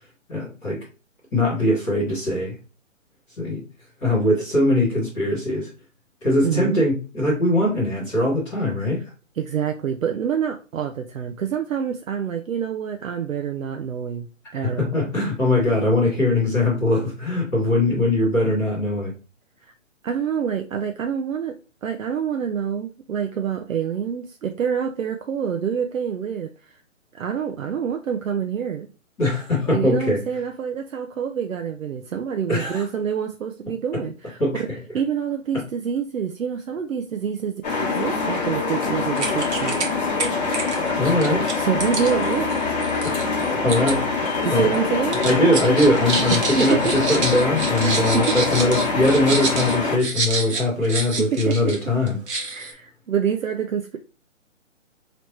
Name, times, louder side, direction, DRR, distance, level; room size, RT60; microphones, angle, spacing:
voice 1, 0.3-0.8 1.3-2.5 3.4-3.6 4.0-5.7 6.2-9.0 14.6-19.1 29.2-30.2 32.5-32.8 34.4-34.6 41.0-41.5 43.0-43.2 43.5-44.7 45.2-52.2, left 1 dB, 5° left, 0.7 m, -21 dB
voice 2, 6.4-6.8 9.4-14.3 14.5-15.0 20.0-26.7 27.1-28.9 29.7-34.4 34.9-39.8 41.5-42.5 44.4-45.3 46.3-46.9 47.4-48.2 50.8-51.0 51.3-51.7 52.5-54.0, right 7 dB, 85° right, 0.6 m, -27 dB
sound 1, 37.6-50.0, left 4 dB, 35° left, 1.1 m, -24 dB
sound 2, 38.8-38.9 39.2-39.9 40.2-43.9 44.3-44.8 45.1-51.8 52.1-52.7, right 3 dB, 60° right, 1.3 m, -28 dB
4.3 x 3.1 x 3.0 m
hypercardioid pair, 165°, 39 cm